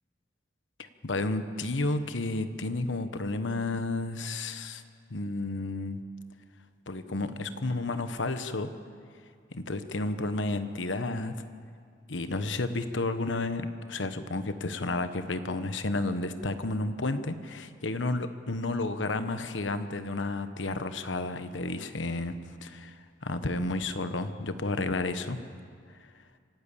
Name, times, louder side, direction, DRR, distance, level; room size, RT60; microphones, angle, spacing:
voice 1, 0.8-4.8 5.1-6.0 6.9-8.7 9.5-11.3 12.1-22.3 22.6-22.9 23.2-25.4, left 2 dB, 90° left, 10 dB, 1.2 m, -31 dB
26.0 x 12.5 x 8.5 m, 2.2 s
head